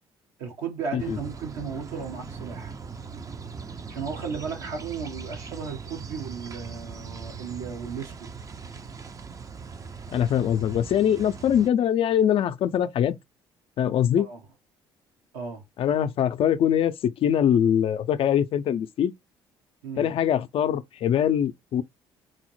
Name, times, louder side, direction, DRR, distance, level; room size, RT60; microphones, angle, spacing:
voice 1, 0.4-2.7 3.9-8.3 14.2-14.4 15.3-15.6 19.8-20.1, right 6 dB, 85° right, 1.2 m, -35 dB
sound 1, 1.0-11.7, right 5 dB, 30° right, 0.4 m, -40 dB
voice 2, 10.1-13.2 13.8-14.3 15.8-19.1 20.0-21.8, left 9 dB, 55° left, 0.4 m, -23 dB
4.0 x 2.0 x 3.0 m
hypercardioid pair, 60°, 11 cm